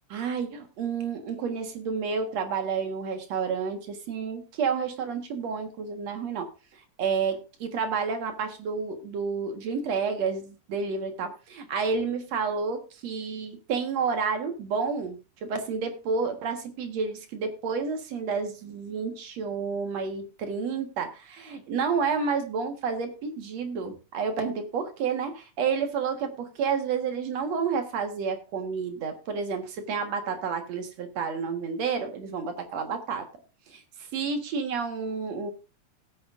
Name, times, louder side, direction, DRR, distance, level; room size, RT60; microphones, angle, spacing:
voice 1, 0.1-6.5 7.0-33.3 33.7-35.5, right 5 dB, 65° right, 6 dB, 2.6 m, -30 dB
17.0 x 8.8 x 2.5 m, 0.32 s
omnidirectional pair, 3.4 m